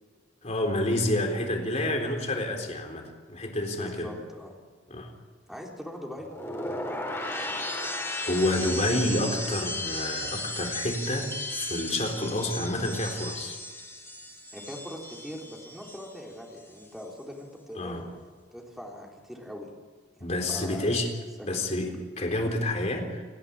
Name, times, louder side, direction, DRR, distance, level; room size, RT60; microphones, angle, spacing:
voice 1, 0.4-4.1 4.9-5.1 8.2-13.6 17.8-18.0 20.2-21.1 21.4-23.2, left 1 dB, 40° left, 3 dB, 3.9 m, -29 dB
voice 2, 3.7-4.6 5.5-6.3 14.5-18.1 18.5-19.7 20.2-20.9 21.4-21.9, left 1 dB, ahead, -1 dB, 3.4 m, -41 dB
sound 1, 6.2-16.3 16.6-17.0, left 1 dB, 15° left, 4.4 m, -35 dB
29.0 x 11.5 x 9.9 m, 1.5 s
head